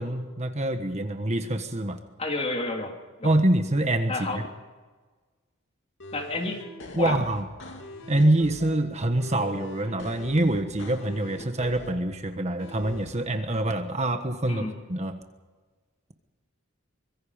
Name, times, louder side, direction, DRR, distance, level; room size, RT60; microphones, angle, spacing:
voice 1, 0.0-2.0 3.2-4.4 6.9-7.4 8.1-14.6 14.9-15.2, right 1 dB, 35° right, 7 dB, 1.4 m, -25 dB
voice 2, 2.2-3.3 4.1-4.4 6.1-6.6 7.0-7.2 14.5-14.7, left 2 dB, 30° left, 2 dB, 3.5 m, -30 dB
sound 1, 6.0-8.8 9.2-12.0 12.6-13.2, left 1 dB, 60° left, 2.9 m, -42 dB
24.5 x 22.5 x 5.2 m, 1.3 s
head